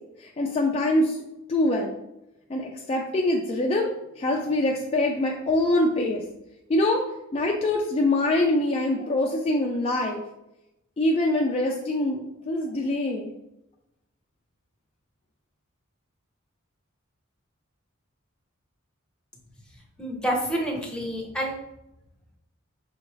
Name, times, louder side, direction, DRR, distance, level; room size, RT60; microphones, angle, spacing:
voice 1, 0.2-1.2 1.5-2.0 2.5-6.2 6.7-7.0 7.3-10.2 11.0-13.3, left 1 dB, 30° left, 0 dB, 0.3 m, -24 dB
voice 2, 20.0-21.6, equal, 5° left, -1 dB, 0.7 m, -28 dB
5.6 x 2.6 x 3.0 m, 0.90 s
head